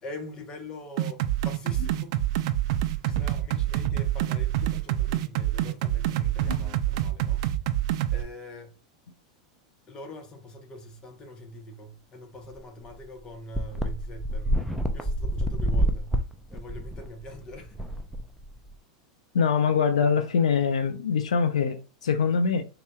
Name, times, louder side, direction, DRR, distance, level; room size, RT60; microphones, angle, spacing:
voice 1, 0.0-2.2 3.0-7.4 8.1-8.7 9.9-14.5 14.9-16.1 16.5-17.8 20.0-20.2, left 1 dB, 25° left, 1.1 m, -43 dB
sound 1, 1.0-8.2, right 13 dB, 65° right, 0.4 m, -26 dB
sound 2, 12.5-12.6 12.9-13.0 13.5-18.7, equal, ahead, 0.5 m, -28 dB
voice 2, 19.3-22.6, left 6 dB, 90° left, 0.5 m, -24 dB
4.1 x 2.9 x 2.4 m
hypercardioid pair, 115°, 3 cm